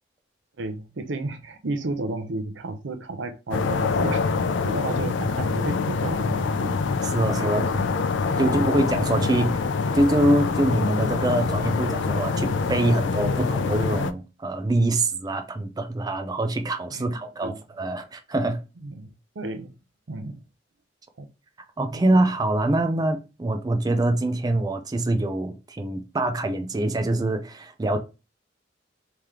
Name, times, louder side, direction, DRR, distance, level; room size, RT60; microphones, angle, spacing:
voice 1, 0.6-6.7 7.2-7.9 8.2-8.5 16.9-17.1 17.4-17.6 18.8-19.1 19.3-19.7 20.1-20.4 21.2-21.3 21.9-22.0, right 2 dB, 90° right, 0.7 m, -32 dB
sound 1, 3.5-14.1, left 4 dB, 90° left, 0.4 m, -25 dB
voice 2, 7.0-7.7 8.4-9.6 9.9-18.6 21.8-28.0, right 1 dB, 20° right, 0.4 m, -24 dB
3.3 x 2.9 x 3.6 m
head